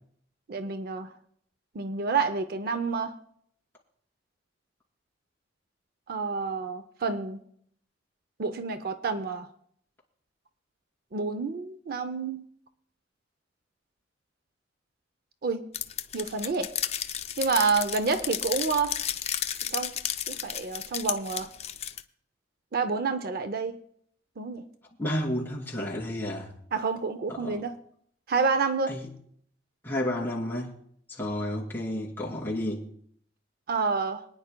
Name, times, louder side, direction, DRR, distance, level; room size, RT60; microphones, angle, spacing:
voice 1, 0.5-1.1 1.7-3.1 6.1-7.4 8.4-9.5 11.1-12.4 15.4-15.7 16.1-16.7 17.4-19.0 19.7-19.9 20.3-21.5 22.7-23.8 24.4-24.6 26.7-27.8 28.3-29.0 33.7-34.2, right 4 dB, 55° right, 0.6 m, -28 dB
sound 1, 15.7-22.0, left 9 dB, 35° left, 0.5 m, -33 dB
voice 2, 25.0-26.5 27.3-27.6 28.9-29.1 29.8-30.7 31.1-32.8, left 1 dB, 10° left, 2.7 m, -31 dB
25.5 x 9.7 x 2.2 m
head